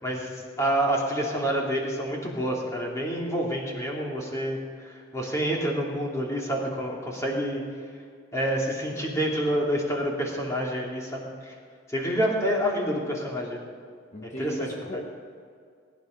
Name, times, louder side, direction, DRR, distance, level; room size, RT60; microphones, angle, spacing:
voice 1, 0.0-0.3 0.6-7.6 8.3-11.5 11.9-13.7 14.2-14.7 14.9-15.0, equal, 15° left, -2 dB, 2.7 m, -28 dB
voice 2, 14.1-15.2, equal, 35° left, 0 dB, 1.1 m, -37 dB
19.5 x 10.5 x 5.2 m, 2.2 s
head